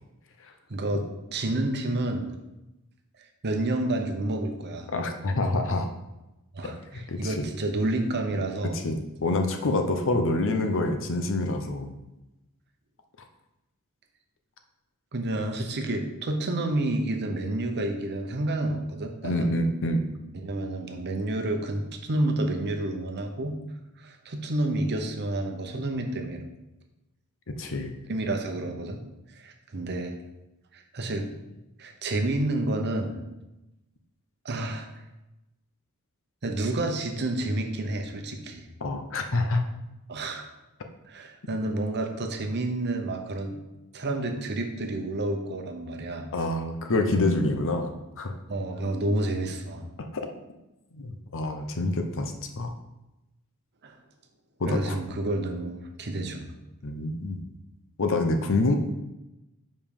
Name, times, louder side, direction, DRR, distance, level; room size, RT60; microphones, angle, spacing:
voice 1, 0.7-1.0 1.3-2.3 3.4-4.9 6.5-8.8 15.1-19.5 20.4-23.6 24.0-26.5 28.1-29.0 29.3-30.1 30.7-31.3 31.8-33.2 34.4-34.9 36.4-38.7 40.1-40.4 41.0-43.6 43.9-46.3 48.5-49.9 53.8-54.0 54.7-56.5, right 2 dB, 50° right, 4 dB, 0.9 m, -29 dB
voice 2, 4.9-5.9 6.9-7.4 8.7-11.9 19.2-20.0 27.6-27.9 38.8-39.6 46.3-47.9 48.2-48.3 50.1-50.2 50.9-52.7 54.6-55.0 56.8-57.4 58.0-58.8, left 2 dB, 60° left, 6 dB, 0.8 m, -26 dB
5.2 x 5.2 x 5.3 m, 0.97 s
head